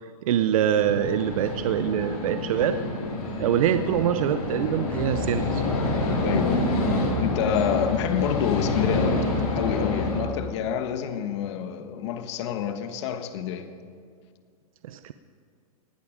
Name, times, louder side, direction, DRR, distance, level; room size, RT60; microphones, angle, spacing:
voice 1, 0.0-2.8 3.4-5.8 14.8-15.1, right 10 dB, 65° right, 10 dB, 0.7 m, -24 dB
sound 1, 0.8-10.2, left 2 dB, 80° left, 4.4 m, -27 dB
Musical instrument, 4.9-10.5, left 5 dB, 5° left, 0.5 m, -37 dB
voice 2, 6.2-6.7 6.9-9.3 9.5-13.7, left 8 dB, 50° left, 8 dB, 1.2 m, -28 dB
18.5 x 12.0 x 5.0 m, 2.2 s
hypercardioid pair, 155°, 19 cm